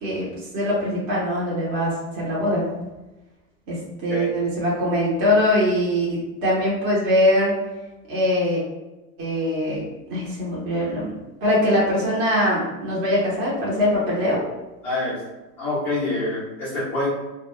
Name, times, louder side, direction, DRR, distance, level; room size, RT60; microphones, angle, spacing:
voice 1, 0.0-2.7 3.7-7.5 8.1-8.6 9.2-11.1 11.4-14.4, left 1 dB, 25° right, -7 dB, 0.7 m, -22 dB
voice 2, 14.8-15.2 15.6-17.1, left 2 dB, 5° left, -12 dB, 0.3 m, -26 dB
2.2 x 2.2 x 2.9 m, 1.0 s
hypercardioid pair, 135°, 49 cm